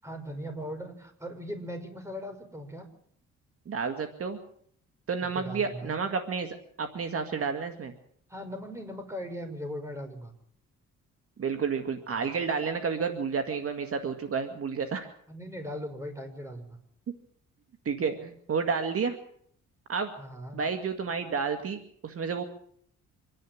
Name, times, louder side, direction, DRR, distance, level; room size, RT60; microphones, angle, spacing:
voice 1, 0.0-2.9 5.2-6.0 8.3-10.3 15.3-16.8 20.2-20.6, equal, 10° right, 5 dB, 5.6 m, -39 dB
voice 2, 3.7-4.4 5.1-7.9 11.4-15.1 17.9-19.2 19.9-20.1 20.5-22.4, right 5 dB, 50° right, 7 dB, 2.1 m, -30 dB
25.5 x 11.0 x 9.7 m, 0.65 s
cardioid pair, 90°, 30 cm